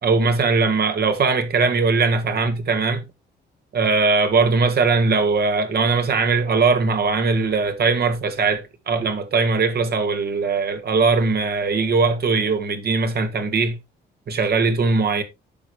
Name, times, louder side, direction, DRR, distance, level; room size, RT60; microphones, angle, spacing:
voice 1, 0.0-3.0 3.7-13.8 14.3-15.2, right 4 dB, 55° right, 2.0 m, -20 dB
9.5 x 6.2 x 3.4 m
cardioid pair, 90°, 20 cm